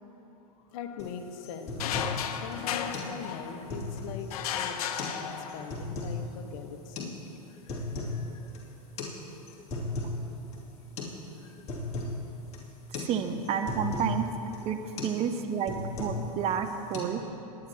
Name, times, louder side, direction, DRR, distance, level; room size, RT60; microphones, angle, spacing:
voice 1, 0.7-7.1 7.5-8.6 11.4-11.8, left 6 dB, 55° left, 5 dB, 1.2 m, -42 dB
sound 1, 1.0-1.1 1.4-2.2 2.5-2.6 2.9-3.1 3.5-4.3 4.8-5.2 5.5-6.2 6.9-7.1 7.5-8.2 8.5-8.6 9.0-9.1 9.5-10.2 10.5-10.6 11.0-11.2 11.4-12.2 12.5-12.7 12.9-13.1 13.4-14.1 14.5-14.7 15.0-15.2 15.5-16.3 16.6-17.0, left 3 dB, 35° left, 2.5 m, -35 dB
sound 2, 1.8-3.8 4.3-5.9, left 8 dB, 75° left, 0.8 m, -34 dB
voice 2, 13.0-14.3 14.6-17.2, right 7 dB, 30° right, 7 dB, 0.8 m, -30 dB
21.5 x 9.7 x 2.8 m, 3.0 s
hypercardioid pair, 125°, 20 cm